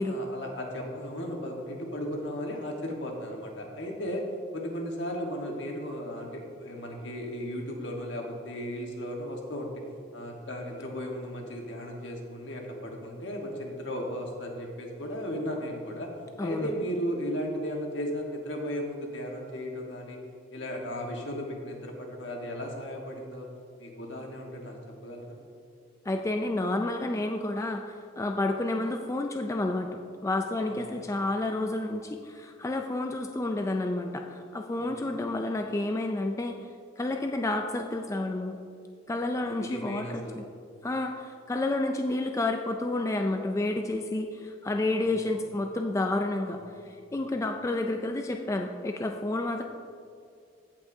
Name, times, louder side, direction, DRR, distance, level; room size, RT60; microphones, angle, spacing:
voice 1, 0.0-4.3 4.5-9.8 10.1-16.1 16.4-20.2 20.5-23.5 23.8-25.4 30.7-31.1 34.8-35.1 39.5-40.4 45.0-45.4 46.4-46.6 47.3-47.4, equal, 70° left, 1 dB, 1.3 m, -36 dB
voice 2, 16.4-16.7 26.1-29.9 30.2-36.6 37.0-38.6 39.1-40.4 40.8-46.6 47.1-49.6, left 2 dB, 15° left, 4 dB, 0.3 m, -30 dB
15.5 x 5.8 x 2.7 m, 2.3 s
head